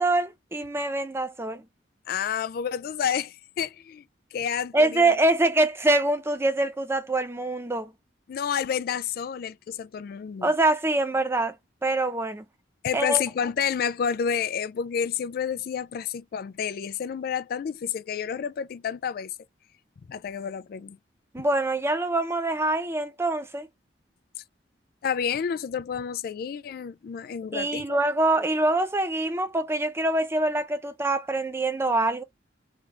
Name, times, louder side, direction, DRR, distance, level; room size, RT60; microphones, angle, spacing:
voice 1, 0.0-1.6 4.7-7.9 10.4-11.5 11.8-12.4 12.9-13.2 21.3-23.7 27.5-32.2, right 2 dB, 15° right, 0.5 m, -24 dB
voice 2, 2.1-4.0 4.3-5.1 8.3-10.5 12.8-19.3 20.1-21.0 25.0-28.0, left 7 dB, 55° left, 0.3 m, -29 dB
3.3 x 2.5 x 3.2 m
head